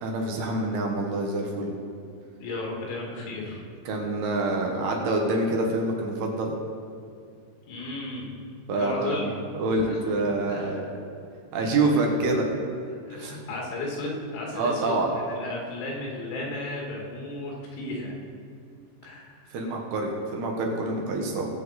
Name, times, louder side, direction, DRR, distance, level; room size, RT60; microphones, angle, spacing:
voice 1, 0.0-1.7 3.9-6.5 8.7-9.2 9.6-10.8 11.5-12.5 13.1-13.4 14.5-15.1 19.5-21.5, right 2 dB, 70° right, 0 dB, 3.0 m, -26 dB
voice 2, 2.4-3.7 7.7-8.3 8.8-9.3 9.8-10.0 10.5-10.9 13.1-18.2 19.0-19.4, left 2 dB, 90° left, -2 dB, 4.6 m, -34 dB
20.0 x 7.4 x 4.1 m, 2.4 s
omnidirectional pair, 5.4 m